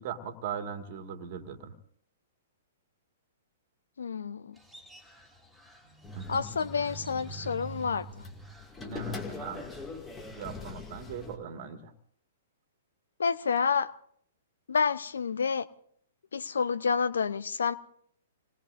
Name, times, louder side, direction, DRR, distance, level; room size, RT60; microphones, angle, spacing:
voice 1, 0.0-1.7 6.2-6.5 8.8-9.6 10.3-11.9, right 6 dB, 50° right, 6 dB, 1.9 m, -39 dB
voice 2, 4.0-4.6 6.3-8.3 13.2-13.9 14.7-15.7 16.3-17.8, left 5 dB, 75° left, 15 dB, 0.7 m, -29 dB
Crow, 4.5-10.9, equal, ahead, 3.3 m, -55 dB
sound 1, 6.0-11.4, left 1 dB, 15° left, 2.2 m, -42 dB
27.5 x 20.0 x 2.6 m, 0.63 s
figure-of-eight pair, 115°, 0 cm